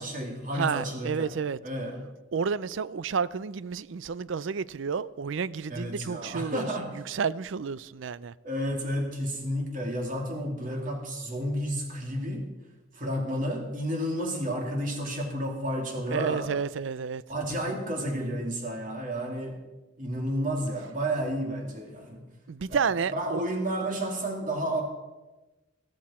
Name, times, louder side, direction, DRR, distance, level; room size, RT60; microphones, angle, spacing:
voice 1, 0.0-1.3 1.6-2.0 5.7-6.9 8.4-12.5 12.9-16.5 17.3-19.6 20.0-22.3 22.7-22.9 23.1-24.8, equal, 40° right, 2.6 m, -31 dB
voice 2, 0.5-1.6 2.3-6.7 6.9-8.3 16.1-17.2 22.5-23.4, right 6 dB, 75° right, 0.4 m, -30 dB
14.5 x 13.5 x 4.3 m
head